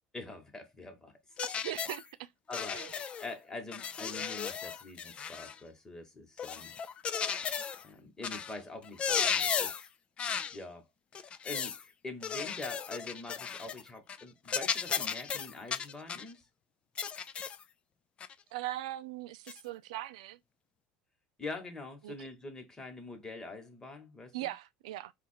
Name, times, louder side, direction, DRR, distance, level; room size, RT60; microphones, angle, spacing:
voice 1, 0.1-1.1 2.5-2.9 3.2-6.7 7.8-9.9 10.5-10.8 11.1-16.4 21.4-24.5, left 2 dB, 15° left, 1.3 m, -44 dB
sound 1, 1.4-2.0 2.5-3.3 3.7-5.6 6.4-7.8 8.2-8.5 8.8-9.9 10.2-10.6 11.2-11.8 12.2-13.8 14.1-14.2 14.5-16.3 17.0-17.6 18.2-18.3 19.5-19.6, left 7 dB, 30° left, 0.4 m, -35 dB
voice 2, 1.4-2.3 2.7-2.9 18.5-20.4 22.0-22.1 24.3-25.1, right 15 dB, 90° right, 0.3 m, -40 dB
4.2 x 2.4 x 4.4 m
supercardioid pair, 110°, 4 cm